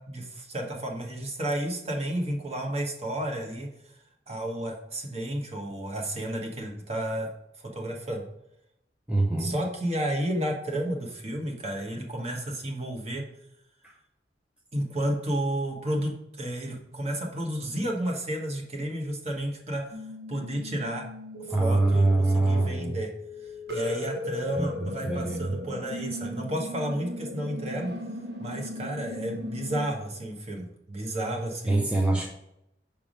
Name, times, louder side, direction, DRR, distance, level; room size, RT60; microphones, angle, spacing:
voice 1, 0.0-3.9 4.3-7.3 7.6-8.2 9.4-13.2 14.7-20.0 20.3-21.1 21.4-23.1 23.4-28.1 28.4-31.9, right 1 dB, 35° right, 0 dB, 1.2 m, -32 dB
voice 2, 9.1-9.6 13.8-13.9 21.5-23.0 24.6-25.5 31.7-32.3, right 2 dB, 5° right, -1 dB, 0.6 m, -24 dB
sound 1, 19.9-29.9, left 1 dB, 75° right, 1.0 m, -37 dB
6.0 x 3.5 x 5.1 m, 0.82 s
head